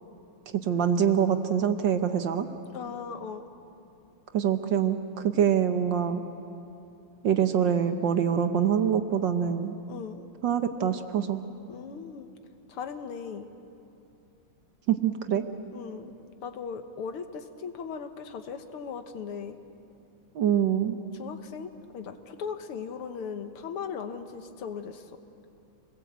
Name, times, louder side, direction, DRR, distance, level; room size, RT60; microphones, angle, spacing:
voice 1, 0.7-2.5 4.3-5.0 5.2-6.2 7.2-9.7 10.4-11.4 14.9-15.4 20.3-21.0, right 8 dB, 60° right, 8 dB, 1.5 m, -25 dB
voice 2, 2.7-3.5 9.9-10.2 11.7-12.3 12.7-13.5 15.7-16.1 16.4-19.6 21.1-25.1, left 6 dB, 75° left, 7 dB, 2.2 m, -38 dB
27.5 x 20.5 x 8.2 m, 2.8 s
omnidirectional pair, 2.4 m